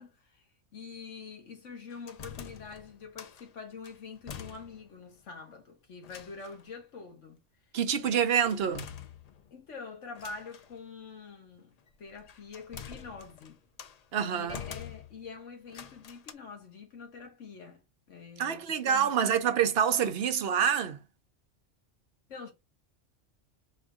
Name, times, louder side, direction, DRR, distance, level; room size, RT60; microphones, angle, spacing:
voice 1, 0.0-7.4 8.0-8.2 9.5-13.6 14.2-19.4 22.3-22.5, left 5 dB, 80° left, 1.6 m, -46 dB
sound 1, 1.9-3.5 3.8-5.0 5.3-5.4 6.0-6.6 8.5-9.6 10.1-10.7 11.9-14.0 14.5-15.3 15.7-16.3, left 8 dB, 60° left, 0.4 m, -46 dB
voice 2, 7.7-8.9 14.1-14.6 18.4-21.0, right 8 dB, 60° right, 0.9 m, -27 dB
4.1 x 2.6 x 4.6 m
omnidirectional pair, 1.2 m